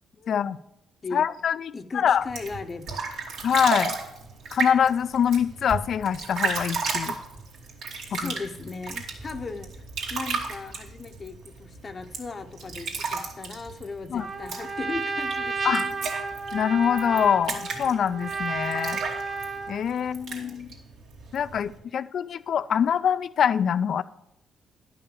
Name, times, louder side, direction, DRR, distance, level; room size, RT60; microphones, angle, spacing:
voice 1, 0.3-0.6 1.1-2.2 3.4-3.9 4.5-7.2 8.1-8.3 14.1-14.3 15.6-15.9 16.5-19.0 19.7-20.7 21.3-24.0, left 8 dB, 60° left, 14 dB, 0.4 m, -24 dB
voice 2, 1.7-3.1 8.0-9.8 10.1-16.0 20.0-20.8, left 4 dB, 35° left, 6 dB, 0.8 m, -38 dB
sound 1, 2.2-21.8, right 4 dB, 80° right, 2.3 m, -34 dB
Trumpet, 14.2-19.9, right 4 dB, 35° right, 1.0 m, -32 dB
11.0 x 5.8 x 6.9 m, 0.84 s
cardioid pair, 90°, 0 cm